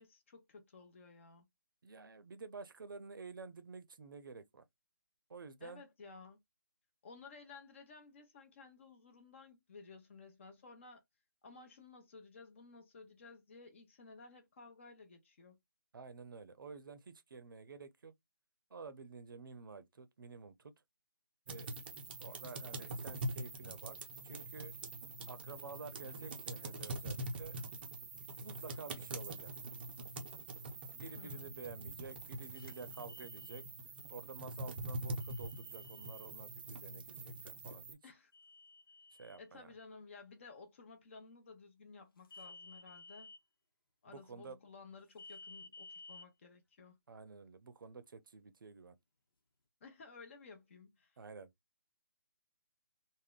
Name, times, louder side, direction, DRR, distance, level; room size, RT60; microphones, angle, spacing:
voice 1, 0.0-1.5 5.6-6.4 7.0-11.0 11.4-15.6 31.2-31.5 38.0-38.3 39.4-43.3 44.0-47.0 49.8-51.2, left 4 dB, 35° left, 0.7 m, -55 dB
voice 2, 1.8-4.6 5.3-5.8 15.9-18.1 18.7-20.7 21.5-21.7 22.2-24.0 24.2-24.7 25.3-27.6 28.2-29.5 30.9-33.6 34.1-38.0 39.2-39.7 44.1-44.6 47.1-48.9 51.2-51.5, right 4 dB, 70° right, 0.6 m, -50 dB
sound 1, 21.5-37.9, right 2 dB, 30° right, 0.5 m, -44 dB
sound 2, 32.5-33.6 35.2-36.3 38.3-39.4 42.2-43.4 45.2-46.2, left 3 dB, 85° left, 0.8 m, -55 dB
3.5 x 2.1 x 2.2 m
hypercardioid pair, 165°, 12 cm